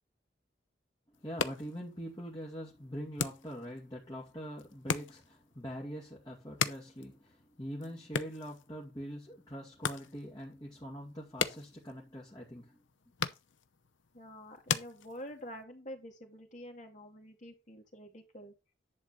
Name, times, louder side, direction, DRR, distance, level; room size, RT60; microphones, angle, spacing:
sound 1, 1.1-15.6, left 6 dB, 90° left, 0.9 m, -40 dB
voice 1, 1.2-12.8, equal, 25° left, 2.4 m, -43 dB
voice 2, 14.1-18.5, equal, 40° left, 2.6 m, -47 dB
11.0 x 3.8 x 7.4 m
head